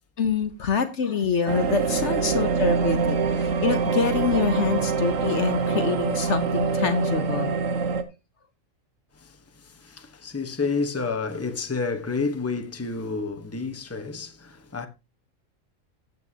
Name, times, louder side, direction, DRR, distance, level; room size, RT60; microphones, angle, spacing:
voice 1, 0.2-7.6, left 6 dB, 60° left, 1.2 m, -26 dB
sound 1, 1.5-8.0, right 5 dB, 65° right, 1.3 m, -25 dB
voice 2, 2.2-2.5 9.1-14.9, left 4 dB, 10° left, 1.1 m, -30 dB
14.5 x 8.3 x 2.9 m
omnidirectional pair, 1.4 m